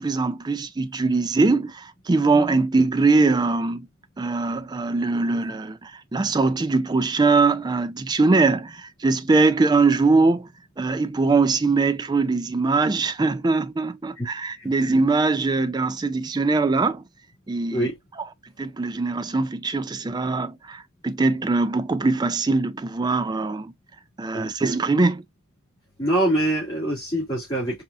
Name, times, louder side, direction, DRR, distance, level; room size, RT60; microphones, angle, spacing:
voice 1, 0.0-3.9 4.2-10.5 10.8-17.0 17.5-17.9 18.6-23.7 24.2-25.2, right 3 dB, 20° right, 0.3 m, -22 dB
voice 2, 26.0-27.8, right 1 dB, 20° left, 2.6 m, -24 dB
5.2 x 2.8 x 2.3 m
head